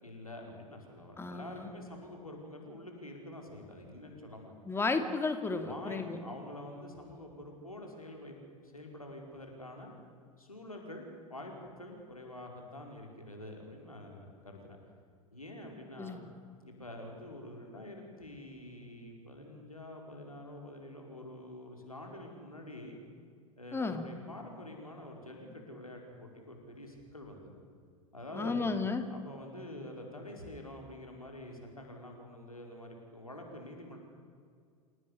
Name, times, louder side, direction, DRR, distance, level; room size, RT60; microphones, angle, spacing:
voice 1, 0.0-4.5 5.5-8.4 8.6-9.9 10.4-14.8 15.3-16.2 16.6-23.0 23.6-27.5 28.1-28.7 29.1-34.0, left 1 dB, 85° left, 1 dB, 5.0 m, -47 dB
voice 2, 1.2-1.7 4.7-6.2 16.0-16.2 23.7-24.1 28.3-29.1, left 3 dB, 15° left, 8 dB, 2.7 m, -33 dB
28.0 x 18.0 x 9.9 m, 2.2 s
figure-of-eight pair, 80°, 18 cm